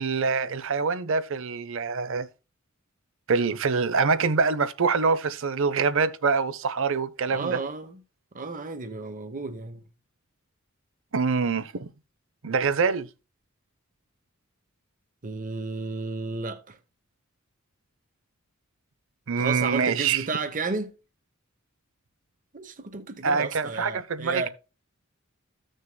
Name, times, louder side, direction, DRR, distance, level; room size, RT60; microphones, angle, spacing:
voice 1, 0.0-2.3 3.3-7.6 11.1-11.9 12.4-13.1 19.3-20.2 23.2-24.5, right 5 dB, 65° right, 0.6 m, -25 dB
voice 2, 7.3-8.0 8.3-9.8 15.2-16.8 19.4-20.9 22.5-24.5, right 3 dB, 40° right, 0.9 m, -33 dB
14.5 x 6.4 x 2.2 m
head